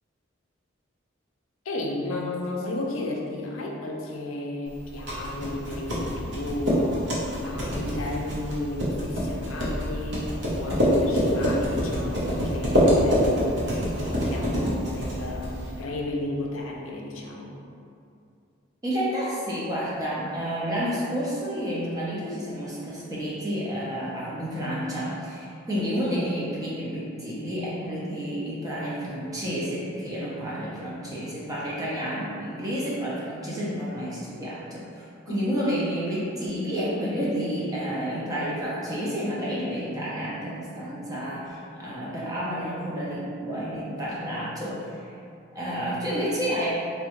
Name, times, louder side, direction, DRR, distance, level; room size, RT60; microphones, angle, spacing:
voice 1, 1.7-7.0 7.4-10.3 10.6-13.6 13.9-17.5 35.3-35.5, left 2 dB, 80° left, -1 dB, 0.5 m, -33 dB
sound 1, 4.8-15.8, equal, 55° right, 0.6 m, -26 dB
voice 2, 18.8-45.1 45.5-46.7, equal, 15° right, -7 dB, 0.5 m, -30 dB
3.5 x 2.1 x 2.9 m, 2.5 s
head